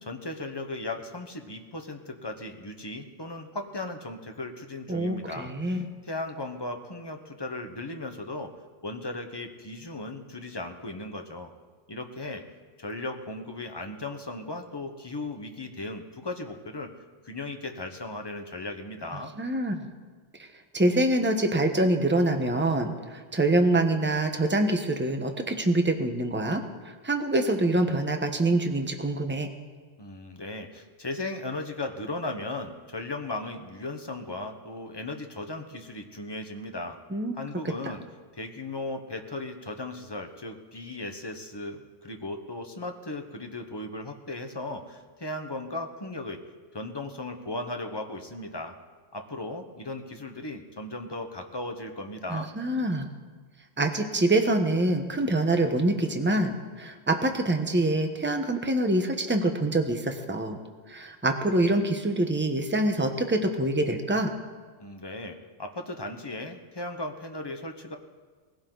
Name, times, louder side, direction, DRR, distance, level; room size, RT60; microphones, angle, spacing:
voice 1, 0.0-8.6 8.8-11.5 11.9-12.4 12.8-16.9 17.2-19.3 30.0-37.0 37.3-38.0 38.3-46.4 46.7-48.7 49.1-52.5 64.8-68.0, left 2 dB, 20° left, 4 dB, 1.2 m, -37 dB
voice 2, 4.9-5.9 19.4-19.9 20.7-26.6 27.0-29.5 37.1-37.4 52.3-53.1 53.8-60.6 60.9-64.3, right 1 dB, 10° right, 5 dB, 1.0 m, -25 dB
20.0 x 15.5 x 4.0 m, 1.4 s
omnidirectional pair, 1.3 m